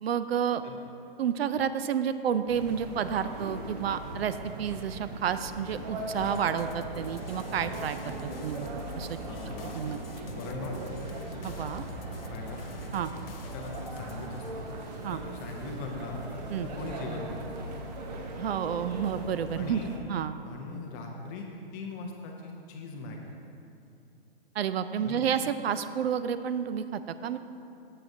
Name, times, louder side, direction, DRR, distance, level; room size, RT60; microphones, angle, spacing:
voice 1, 0.0-0.6 1.2-8.7 9.0-9.2 9.7-10.0 11.4-11.8 12.9-13.1 15.0-15.2 16.5-16.7 18.4-19.8 20.1-20.4 24.5-27.4, right 8 dB, 80° right, 12 dB, 0.5 m, -30 dB
sound 1, 2.5-20.0, right 2 dB, 45° right, 0.9 m, -39 dB
sound 2, 6.1-15.2, left 5 dB, 70° left, 0.6 m, -47 dB
voice 2, 9.2-9.9 10.3-10.7 12.3-12.6 13.4-14.7 15.0-16.2 16.6-17.4 19.5-20.0 20.4-21.5 21.7-23.3 25.0-25.2, left 3 dB, 15° left, 1 dB, 0.5 m, -40 dB
9.3 x 7.6 x 2.6 m, 2.7 s
hypercardioid pair, 145°, 30 cm